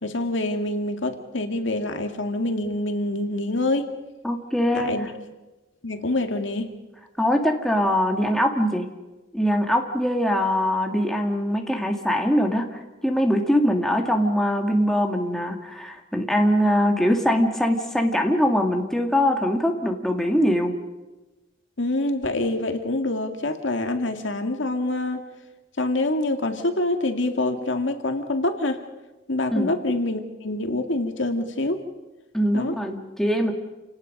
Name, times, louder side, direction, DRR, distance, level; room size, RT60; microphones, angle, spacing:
voice 1, 0.0-3.9 4.7-5.1 5.8-6.7 21.8-25.2 25.8-28.8 29.3-31.8 32.5-32.8, left 2 dB, 70° left, 6 dB, 2.1 m, -26 dB
voice 2, 4.2-4.9 7.2-8.9 9.3-20.8 29.5-29.7 32.3-33.5, equal, ahead, 2 dB, 1.9 m, -22 dB
29.0 x 18.5 x 5.4 m, 1.1 s
head